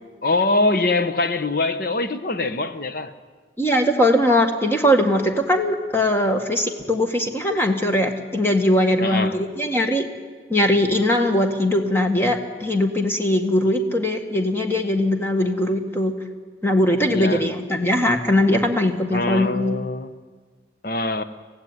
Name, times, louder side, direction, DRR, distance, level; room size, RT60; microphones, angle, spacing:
voice 1, 0.2-3.1 9.0-9.4 17.1-17.4 19.1-20.1 20.8-21.2, left 2 dB, 50° left, 1.1 m, -23 dB
voice 2, 3.6-10.1 10.5-16.1 16.6-19.7, left 1 dB, 15° left, 1.8 m, -20 dB
25.0 x 15.5 x 9.7 m
head